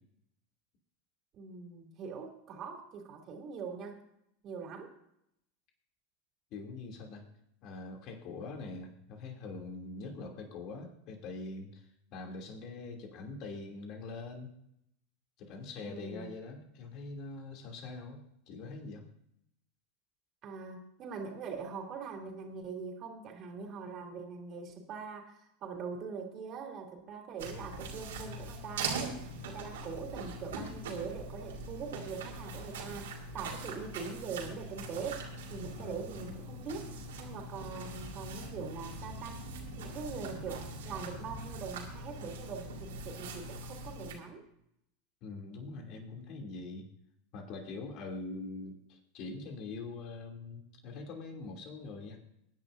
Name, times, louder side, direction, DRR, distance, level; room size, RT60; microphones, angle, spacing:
voice 1, 1.3-4.0 4.4-4.9 15.8-16.3 20.4-29.2 29.4-39.4 39.8-44.5, right 5 dB, 45° right, 2 dB, 2.9 m, -42 dB
voice 2, 6.5-7.3 7.6-14.5 15.4-18.2 18.5-19.0 35.7-36.4 45.2-46.8 47.3-52.2, left 3 dB, 50° left, 2 dB, 2.8 m, -43 dB
sound 1, 27.4-44.1, right 2 dB, 80° right, 2.8 m, -42 dB
22.5 x 10.0 x 2.6 m, 0.77 s
hypercardioid pair, 95°, 0 cm